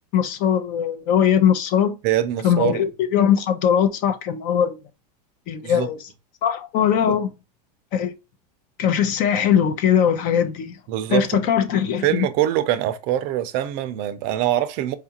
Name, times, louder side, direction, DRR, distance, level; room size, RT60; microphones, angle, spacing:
voice 1, 0.1-2.0 2.4-4.8 5.5-6.0 6.4-7.3 7.9-8.1 8.8-10.7 11.1-12.2, left 9 dB, 40° left, 0.6 m, -20 dB
voice 2, 2.0-2.8 5.6-5.9 7.1-7.2 10.9-11.4 12.0-15.0, right 12 dB, 45° right, 0.5 m, -23 dB
4.7 x 2.4 x 2.8 m
supercardioid pair, 140°, 21 cm